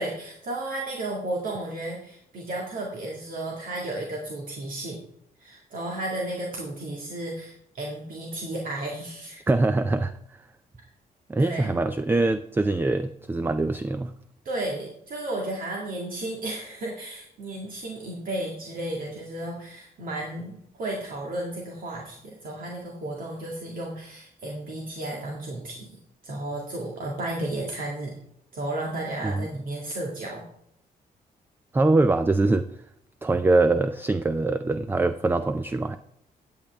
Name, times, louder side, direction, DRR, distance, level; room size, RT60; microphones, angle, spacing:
voice 1, 0.0-5.0 5.4-9.4 11.4-11.8 14.4-28.1 28.5-30.5, right 1 dB, 65° right, -2 dB, 2.0 m, -33 dB
voice 2, 9.5-10.1 10.4-10.5 11.3-14.2 29.2-29.5 31.7-32.7 33.2-36.0, right 2 dB, 15° right, 11 dB, 0.4 m, -23 dB
13.5 x 8.7 x 3.5 m, 0.73 s
cardioid pair, 125°, 16 cm